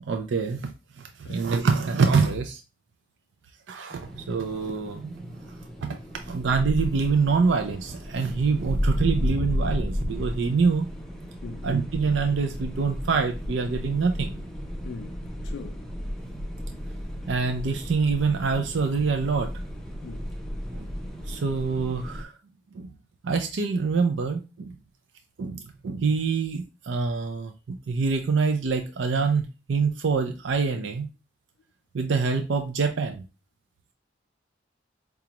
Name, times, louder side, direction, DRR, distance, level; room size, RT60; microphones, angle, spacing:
voice 1, 0.0-0.7 1.3-2.6 3.7-5.4 5.8-10.9 11.6-14.4 17.3-19.5 20.7-20.9 21.3-22.3 22.7-22.9 23.2-24.8 25.4-31.1 31.9-33.2, right 4 dB, 70° right, 0.4 m, -25 dB
sound 1, 3.9-22.2, equal, ahead, 0.5 m, -33 dB
voice 2, 14.8-15.8 20.0-20.3, left 4 dB, 60° left, 0.3 m, -41 dB
4.9 x 2.3 x 2.9 m
head